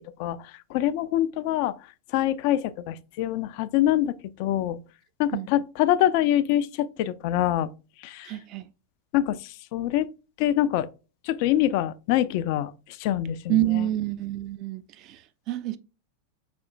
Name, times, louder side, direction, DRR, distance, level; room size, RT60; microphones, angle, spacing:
voice 1, 0.7-1.7 2.1-4.1 4.4-4.8 5.2-7.7 8.0-8.3 9.1-9.4 9.7-10.1 10.4-10.9 11.3-12.7 13.0-13.5, left 12 dB, 45° left, 0.3 m, -24 dB
voice 2, 8.2-8.7 13.5-15.8, right 15 dB, 40° right, 0.4 m, -28 dB
5.1 x 4.2 x 2.3 m
figure-of-eight pair, 90°, 0 cm